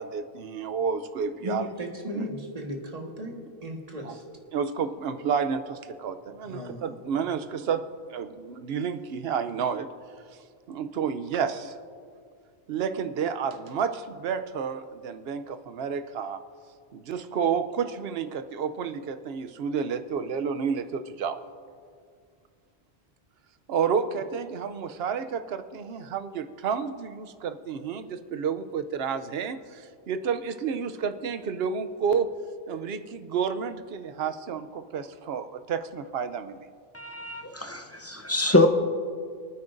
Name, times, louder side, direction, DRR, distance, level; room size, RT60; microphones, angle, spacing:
voice 1, 0.0-1.7 2.2-2.3 4.0-4.1 4.5-7.8 8.1-9.9 10.7-11.8 12.7-16.4 16.9-21.4 23.7-32.3 32.7-36.7, right 6 dB, 70° right, 9 dB, 0.9 m, -30 dB
voice 2, 1.4-4.2 6.4-7.3, equal, 35° right, 1 dB, 1.6 m, -36 dB
voice 3, 36.9-38.7, left 2 dB, 15° left, 4 dB, 0.6 m, -24 dB
28.0 x 9.5 x 2.6 m, 2.2 s
omnidirectional pair, 1.1 m